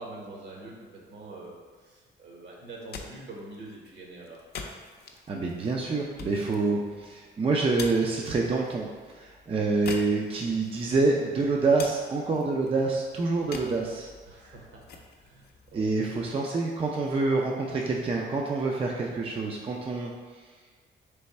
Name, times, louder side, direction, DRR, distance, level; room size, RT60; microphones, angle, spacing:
voice 1, 0.0-4.4 14.3-16.3, right 2 dB, 60° right, -2 dB, 1.1 m, -45 dB
sound 1, 2.7-16.6, left 4 dB, 55° left, 0.5 m, -46 dB
voice 2, 5.3-8.9 9.1-14.1 15.7-20.1, right 3 dB, 30° right, -1 dB, 0.4 m, -27 dB
3.4 x 3.1 x 4.1 m, 1.5 s
cardioid pair, 90°, 20 cm